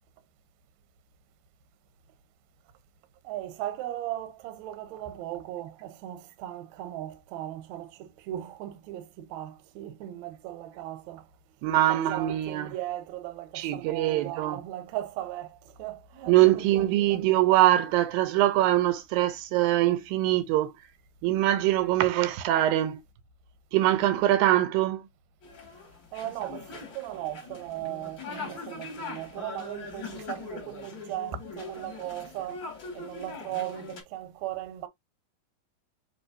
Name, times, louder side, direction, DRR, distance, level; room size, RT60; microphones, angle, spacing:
voice 1, 3.2-11.3 11.9-17.2 26.1-32.7 32.9-34.9, right 13 dB, 75° right, 1.8 m, -37 dB
voice 2, 11.6-12.7 13.6-14.6 16.3-20.7 21.2-23.0 23.7-25.1, right 14 dB, 90° right, 2.4 m, -23 dB
sound 1, 25.4-34.0, left 4 dB, 40° left, 2.0 m, -42 dB
6.5 x 3.1 x 2.6 m
omnidirectional pair, 4.1 m